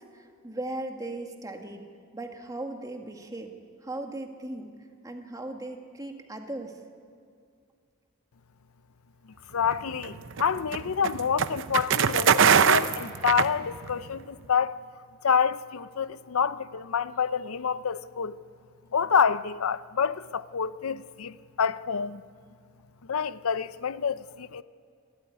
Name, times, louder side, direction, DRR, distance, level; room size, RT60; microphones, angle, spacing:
voice 1, 0.1-1.8 2.1-3.5 3.8-4.7 5.0-6.8, right 2 dB, 15° right, 1.8 m, -37 dB
voice 2, 9.5-14.8 15.2-18.4 18.9-22.2 23.0-24.6, left 6 dB, 90° left, 0.6 m, -27 dB
sound 1, 9.6-14.1, right 7 dB, 60° right, 0.7 m, -23 dB
25.5 x 14.0 x 9.8 m
head